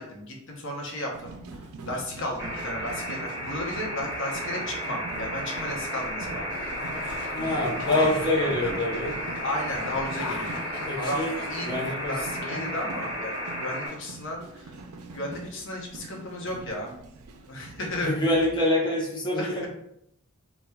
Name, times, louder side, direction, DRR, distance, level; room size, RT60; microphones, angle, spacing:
voice 1, 0.0-1.3 1.9-6.5 7.8-8.5 9.4-10.5 11.0-11.7 12.1-14.7 15.1-16.9 17.5-18.1 19.4-19.7, left 1 dB, 60° left, 0 dB, 0.8 m, -34 dB
sound 1, 1.1-18.6, right 3 dB, 75° right, 0.4 m, -43 dB
sound 2, 2.4-13.9, equal, 15° right, 1.0 m, -34 dB
sound 3, 6.5-12.0, left 5 dB, 80° left, 0.3 m, -40 dB
voice 2, 7.3-9.2 10.9-11.3 11.6-12.7 18.0-19.7, left 1 dB, 20° left, -4 dB, 0.7 m, -26 dB
4.2 x 2.2 x 2.3 m, 0.75 s
head